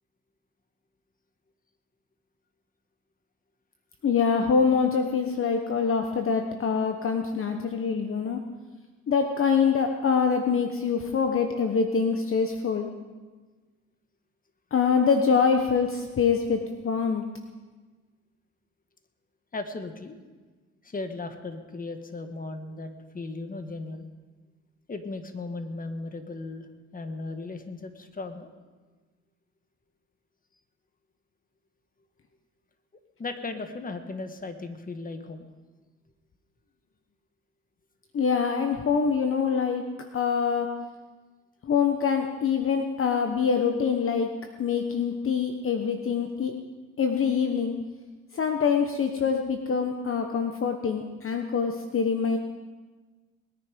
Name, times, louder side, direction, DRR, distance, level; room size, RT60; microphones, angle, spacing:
voice 1, 4.0-8.4 9.1-12.9 14.7-17.2 38.1-39.9 40.1-40.7 41.6-44.3 44.6-46.5 47.0-47.7 48.3-52.4, left 6 dB, 45° left, 5 dB, 1.1 m, -25 dB
voice 2, 19.5-20.2 20.8-24.1 24.9-28.5 33.2-35.5, left 3 dB, 30° left, 7 dB, 1.5 m, -36 dB
21.0 x 10.0 x 5.2 m, 1.3 s
cardioid pair, 90°, 30 cm